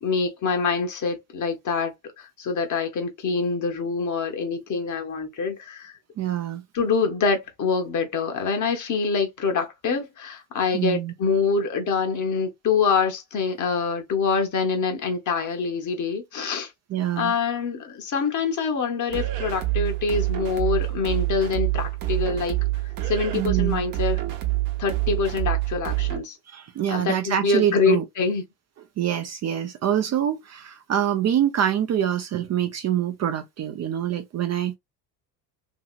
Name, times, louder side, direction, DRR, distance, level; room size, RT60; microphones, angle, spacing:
voice 1, 0.0-6.0 6.7-16.7 17.2-22.6 23.0-24.2 24.8-26.4 26.9-28.4, left 5 dB, 35° left, 1.0 m, -25 dB
voice 2, 6.2-6.6 10.7-11.1 16.9-17.3 23.3-23.8 26.5-28.0 29.0-34.7, right 10 dB, 35° right, 0.5 m, -25 dB
sound 1, 19.1-26.2, right 18 dB, 65° right, 0.9 m, -26 dB
2.9 x 2.8 x 2.4 m
hypercardioid pair, 60°, 50 cm